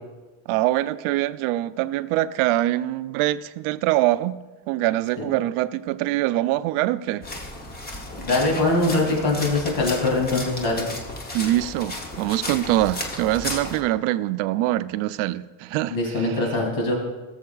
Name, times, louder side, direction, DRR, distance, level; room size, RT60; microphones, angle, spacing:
voice 1, 0.5-7.3 11.3-16.0, right 15 dB, 80° right, 0.5 m, -24 dB
sound 1, 7.2-13.8, left 2 dB, 20° left, 0.8 m, -34 dB
voice 2, 8.2-10.9 15.9-16.9, left 2 dB, 70° left, 3.1 m, -22 dB
18.0 x 7.2 x 2.4 m
cardioid pair, 170°, 49 cm